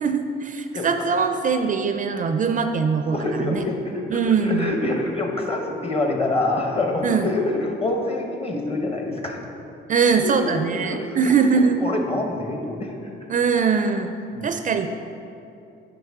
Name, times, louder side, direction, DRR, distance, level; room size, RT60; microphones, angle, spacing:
voice 1, 0.0-3.6 4.1-4.7 7.0-7.3 9.9-11.8 13.3-14.1 14.4-14.9, right 5 dB, 40° right, 7 dB, 0.4 m, -22 dB
voice 2, 3.1-9.5 10.8-13.1 14.3-14.5, left 2 dB, 30° left, 2 dB, 1.0 m, -26 dB
7.9 x 5.1 x 3.6 m, 2.6 s
cardioid pair, 90°, 20 cm